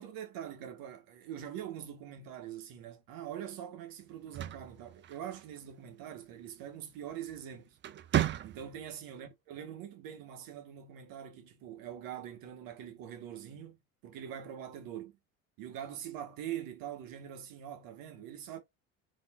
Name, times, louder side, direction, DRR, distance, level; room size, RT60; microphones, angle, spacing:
voice 1, 0.0-7.8 8.4-13.8 14.0-15.2 15.6-18.6, right 10 dB, 55° right, 1.2 m, -43 dB
sound 1, 4.1-5.7 7.1-7.4 7.8-9.0, right 12 dB, 30° right, 0.4 m, -34 dB
3.6 x 2.9 x 2.2 m
hypercardioid pair, 75°, 41 cm